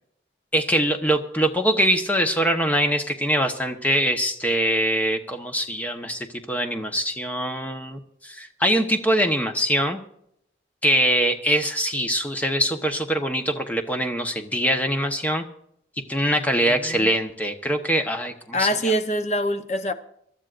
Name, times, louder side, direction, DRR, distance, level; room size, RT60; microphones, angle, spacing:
voice 1, 0.5-10.0 10.8-15.4 16.1-18.7, equal, 10° left, 1.0 m, -23 dB
voice 2, 16.7-17.1 18.5-19.9, equal, 40° left, 0.8 m, -25 dB
26.0 x 12.5 x 2.5 m
head